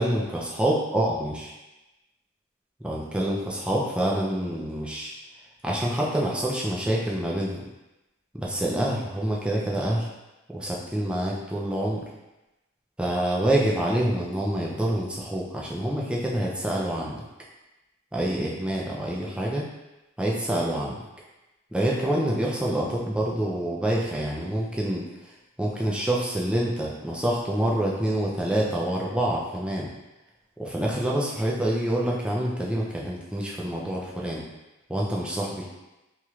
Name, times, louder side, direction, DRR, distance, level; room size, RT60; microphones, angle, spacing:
voice 1, 0.0-1.5 2.8-5.1 5.6-7.7 8.3-10.1 10.5-12.0 13.0-17.2 18.1-19.7 20.2-21.0 21.7-25.1 25.6-29.9 30.6-34.4 34.9-35.6, right 1 dB, 5° right, -4 dB, 0.4 m, -26 dB
3.0 x 3.0 x 2.4 m, 1.0 s
head